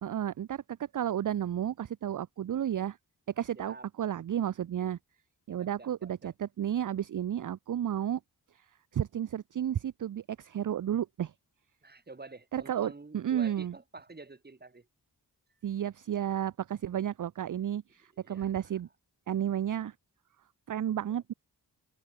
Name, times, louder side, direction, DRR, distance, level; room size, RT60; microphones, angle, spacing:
voice 1, 0.0-3.0 3.4-5.0 5.5-8.2 8.9-11.3 12.5-13.7 15.6-18.9 19.3-19.9 20.7-21.3, right 10 dB, 50° right, 0.5 m, -32 dB
voice 2, 3.5-3.9 5.6-6.3 11.8-14.9 18.2-18.5 21.1-21.2, right 3 dB, 25° right, 1.4 m, -48 dB
wide cardioid pair, 65°, 40 cm